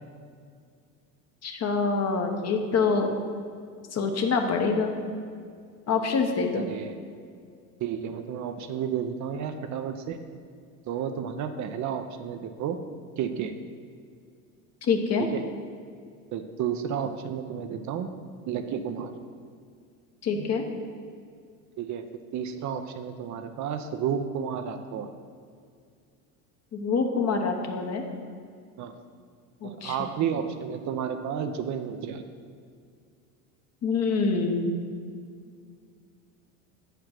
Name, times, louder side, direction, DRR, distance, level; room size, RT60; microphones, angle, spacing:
voice 1, 1.4-3.1 3.9-4.9 5.9-6.7 14.9-15.3 20.2-20.6 26.7-28.0 29.6-30.1 33.8-34.8, left 4 dB, 40° left, 4 dB, 1.1 m, -26 dB
voice 2, 6.5-7.0 7.8-10.2 10.9-12.8 13.2-13.5 15.3-15.4 16.3-18.1 18.5-19.1 21.8-22.0 22.3-25.1 28.8-28.9 29.6-32.2, right 8 dB, 45° right, 7 dB, 0.6 m, -31 dB
7.5 x 5.1 x 5.8 m, 2.2 s
hypercardioid pair, 85°, 40 cm